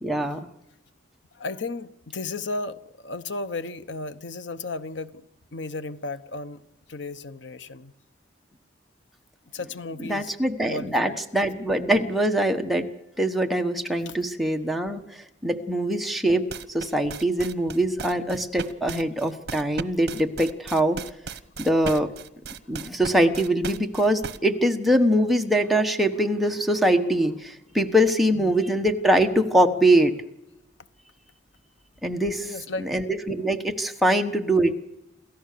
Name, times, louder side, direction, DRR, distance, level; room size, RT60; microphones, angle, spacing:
voice 1, 0.0-0.5 10.0-12.9 13.2-16.4 16.7-21.0 21.6-22.1 22.7-30.1 32.0-32.5 32.8-34.8, right 1 dB, ahead, 1.3 m, -23 dB
voice 2, 1.4-5.2 5.5-6.6 6.9-7.9 9.5-10.3 10.6-11.2 14.1-14.2 21.9-22.0 28.3-28.6 32.4-32.9, left 3 dB, 85° left, 1.0 m, -34 dB
sound 1, 16.5-24.4, right 4 dB, 65° right, 1.0 m, -36 dB
28.0 x 14.5 x 6.8 m
head